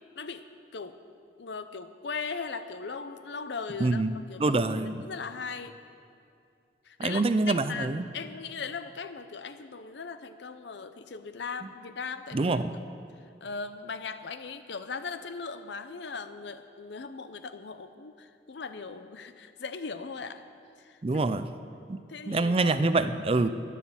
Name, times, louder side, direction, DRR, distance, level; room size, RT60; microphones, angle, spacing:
voice 1, 0.2-0.5 0.7-1.0 1.4-4.0 4.3-4.6 5.0-5.8 6.8-12.8 13.4-20.4 20.8-21.0 22.1-22.8, left 5 dB, 75° left, 11 dB, 0.7 m, -39 dB
voice 2, 3.8-4.1 4.4-5.1 7.0-8.1 12.3-12.7 21.0-21.5 21.9-22.0 22.3-23.5, right 3 dB, 30° right, 12 dB, 0.4 m, -25 dB
11.5 x 10.0 x 7.2 m, 2.4 s
head